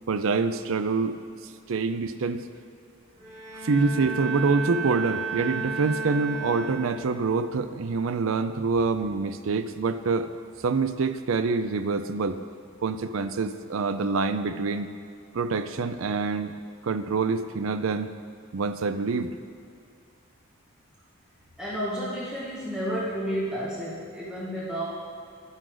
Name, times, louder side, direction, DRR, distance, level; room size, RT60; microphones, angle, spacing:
voice 1, 0.1-1.2 1.7-2.4 3.6-10.3 10.6-12.4 12.8-14.9 15.3-16.5 16.8-18.1 18.5-19.3, right 4 dB, 70° right, 10 dB, 0.5 m, -26 dB
Bowed string instrument, 3.2-7.2, right 4 dB, 30° right, 2.9 m, -33 dB
voice 2, 21.6-24.8, equal, 5° right, -9 dB, 1.7 m, -31 dB
11.5 x 9.7 x 3.9 m, 2.4 s
head